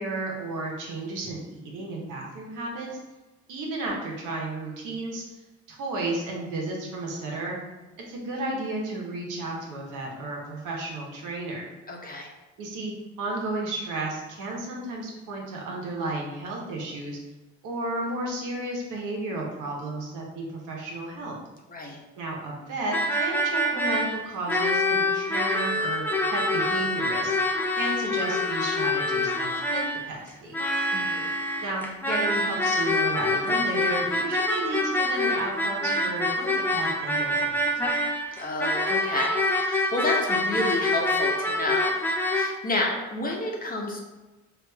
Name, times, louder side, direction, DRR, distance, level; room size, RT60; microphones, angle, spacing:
voice 1, 0.0-2.9 3.5-5.2 5.7-7.6 8.1-11.7 12.6-17.2 17.6-21.4 22.2-27.3 27.8-30.5 31.6-38.0, right 2 dB, 85° right, -2 dB, 1.0 m, -33 dB
voice 2, 11.9-12.3 21.7-22.0 30.9-31.3 38.4-41.9 42.3-44.0, left 2 dB, 30° left, -1 dB, 0.8 m, -30 dB
sound 1, 22.9-42.5, left 1 dB, 5° left, 0.4 m, -26 dB
4.6 x 2.5 x 2.2 m, 1.1 s
cardioid pair, 90°, 30 cm